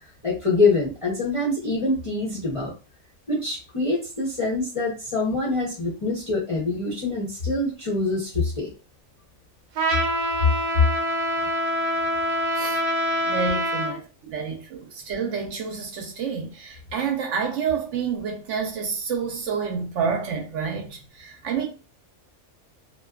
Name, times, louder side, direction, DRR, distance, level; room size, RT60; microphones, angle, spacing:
voice 1, 0.2-2.7 3.3-8.7, left 3 dB, 35° left, 0.5 m, -25 dB
Trumpet, 9.8-14.0, equal, 90° right, 1.1 m, -25 dB
voice 2, 13.2-21.7, right 6 dB, 70° right, 0.9 m, -29 dB
2.6 x 2.2 x 2.3 m
omnidirectional pair, 1.4 m